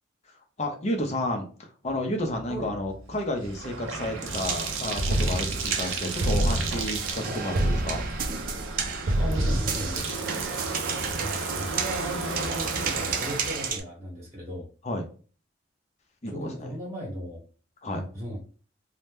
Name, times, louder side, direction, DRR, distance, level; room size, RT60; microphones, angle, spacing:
voice 1, 0.6-1.5 1.8-8.0 14.8-15.1 16.2-16.7 17.8-18.0, left 1 dB, 35° left, 2 dB, 0.6 m, -31 dB
Bathtub (filling or washing), 2.3-13.7, right 4 dB, 90° right, 0.6 m, -34 dB
sound 1, 4.4-13.8, right 2 dB, 45° right, 0.4 m, -29 dB
voice 2, 9.2-10.1 11.1-14.7 16.3-17.4 17.9-18.4, equal, 15° right, -3 dB, 1.2 m, -36 dB
2.8 x 2.1 x 3.3 m, 0.38 s
head